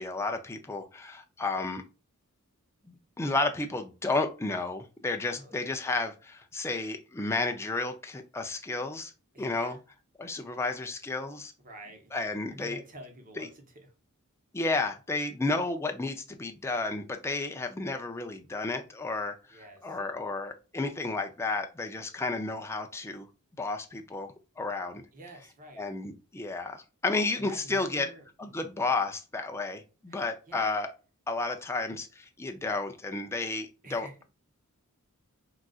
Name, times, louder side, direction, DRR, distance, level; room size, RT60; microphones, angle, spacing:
voice 1, 0.0-1.8 2.9-9.1 9.4-9.8 10.2-11.5 12.1-12.8 13.4-13.5 14.5-23.3 23.6-25.0 25.8-28.1 28.4-30.9 31.3-34.2, left 3 dB, 10° left, 4 dB, 0.4 m, -32 dB
voice 2, 9.3-9.8 11.6-12.2 12.5-13.9 19.5-20.0 25.1-25.8 27.3-28.2 30.1-30.7 33.8-34.1, right 1 dB, 40° right, 3 dB, 0.9 m, -48 dB
3.9 x 2.4 x 2.3 m, 0.32 s
head